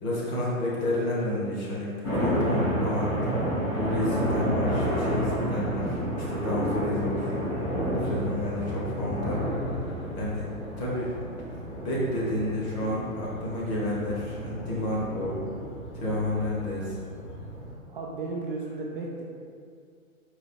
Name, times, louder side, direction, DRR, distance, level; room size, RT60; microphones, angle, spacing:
voice 1, 0.0-3.1 3.7-7.4 7.9-9.4 10.2-10.5 10.8-11.2 11.8-15.4 15.9-17.0, left 1 dB, 30° left, -5 dB, 1.1 m, -30 dB
sound 1, 2.0-17.7, equal, 10° left, 0.6 m, -30 dB
voice 2, 2.3-2.6 7.7-8.2 17.9-19.2, right 3 dB, 40° right, -3 dB, 0.4 m, -35 dB
4.1 x 2.5 x 4.4 m, 2.2 s
figure-of-eight pair, 125°, 42 cm